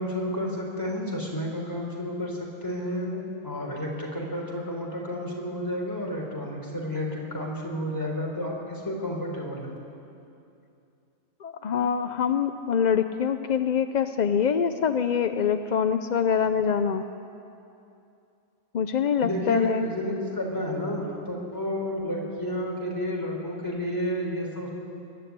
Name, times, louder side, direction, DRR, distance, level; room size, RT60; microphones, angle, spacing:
voice 1, 0.0-9.8 19.2-24.7, left 1 dB, 15° left, -2 dB, 4.0 m, -31 dB
voice 2, 11.4-17.0 18.7-19.9, left 7 dB, 60° left, 9 dB, 0.4 m, -25 dB
23.0 x 12.5 x 9.6 m, 2.7 s
omnidirectional pair, 1.5 m